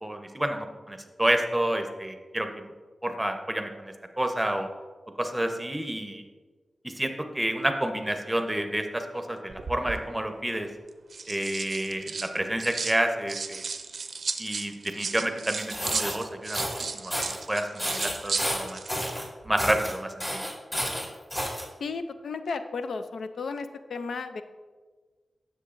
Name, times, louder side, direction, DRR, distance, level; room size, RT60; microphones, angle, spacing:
voice 1, 0.0-2.5 3.0-4.7 5.2-6.2 7.0-10.7 11.3-13.6 14.4-16.7 16.9-18.8 19.4-20.4, right 1 dB, 10° right, 5 dB, 0.8 m, -29 dB
sound 1, 9.5-10.0 10.9-13.0 13.3-19.1 19.4-19.7, right 4 dB, 65° right, 0.5 m, -35 dB
sound 2, 15.6-16.1 16.5-16.8 17.1-17.4 17.8-19.2 19.6-19.9 20.2-21.6, equal, 25° left, 1.9 m, -31 dB
voice 2, 21.8-24.4, left 4 dB, 90° left, 9 dB, 0.4 m, -34 dB
9.9 x 6.9 x 2.5 m, 1.4 s
wide cardioid pair, 75°, 0 cm